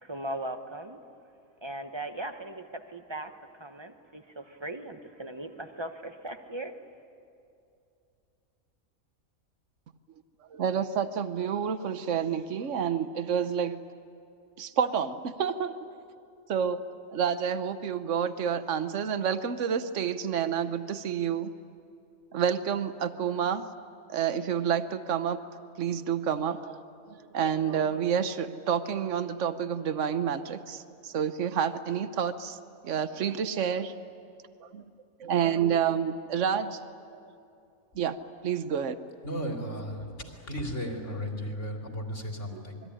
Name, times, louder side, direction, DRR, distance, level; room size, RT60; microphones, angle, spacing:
voice 1, 0.0-1.0 1.6-6.7, right 1 dB, 20° right, 7 dB, 1.2 m, -38 dB
voice 2, 10.5-13.8 14.6-15.8 16.5-16.8 17.1-21.5 22.3-23.7 24.1-25.4 25.8-26.8 27.1-32.6 32.8-33.9 34.6-34.8 35.2-36.8 37.9-38.2 38.4-39.0 42.5-42.6, right 8 dB, 60° right, 11 dB, 1.3 m, -29 dB
voice 3, 39.2-40.0 40.5-42.8, equal, 55° left, 1 dB, 3.5 m, -34 dB
27.0 x 22.0 x 10.0 m, 2.5 s
omnidirectional pair, 1.4 m